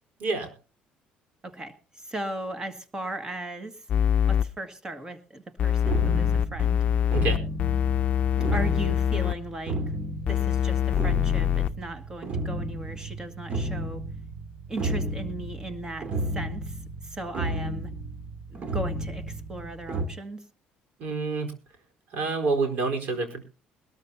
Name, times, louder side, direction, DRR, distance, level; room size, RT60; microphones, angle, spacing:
voice 1, 0.2-0.5 7.1-7.4 21.0-21.5 22.1-23.4, right 3 dB, 65° right, 4 dB, 4.3 m, -27 dB
voice 2, 1.4-3.8 4.3-6.8 8.5-9.8 10.3-14.0 14.7-16.1 16.3-16.7 17.0-17.9 18.5-20.4, right 1 dB, 20° right, 9 dB, 2.0 m, -37 dB
sound 1, 3.9-4.4 5.6-9.3 10.3-11.7, left 9 dB, 45° left, 0.6 m, -24 dB
sound 2, 5.8-20.1, right 1 dB, 40° right, 2.4 m, -33 dB
21.0 x 13.0 x 2.8 m, 0.34 s
cardioid pair, 110°, 3 cm